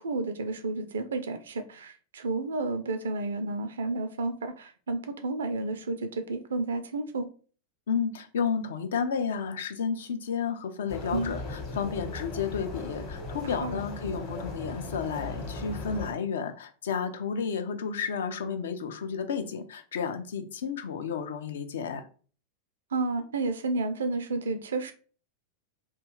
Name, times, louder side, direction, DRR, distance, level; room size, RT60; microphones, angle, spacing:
voice 1, 0.0-7.3 11.1-11.4 13.4-13.8 22.9-24.9, right 3 dB, 65° right, 9 dB, 0.4 m, -31 dB
voice 2, 7.9-22.0, left 6 dB, 60° left, 7 dB, 0.3 m, -32 dB
sound 1, 10.9-16.1, left 2 dB, 40° left, 1.0 m, -38 dB
2.4 x 2.2 x 2.9 m, 0.40 s
figure-of-eight pair, 90°, 0 cm